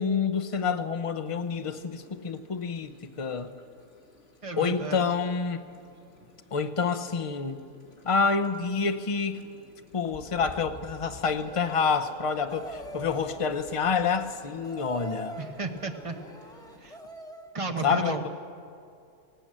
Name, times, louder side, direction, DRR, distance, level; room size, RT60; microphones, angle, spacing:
voice 1, 0.0-3.5 4.6-5.6 6.5-7.6 8.1-9.5 9.9-15.4 17.8-18.3, left 5 dB, 30° left, 8 dB, 0.6 m, -28 dB
sound 1, 1.3-16.9, left 1 dB, 60° left, 3.2 m, -53 dB
voice 2, 4.4-5.1 15.4-16.1 16.8-17.0 17.5-18.3, right 3 dB, 25° right, 5 dB, 1.2 m, -33 dB
sound 2, 11.4-17.5, right 1 dB, 5° left, 1.0 m, -44 dB
18.0 x 17.0 x 8.8 m, 2.5 s
omnidirectional pair, 1.4 m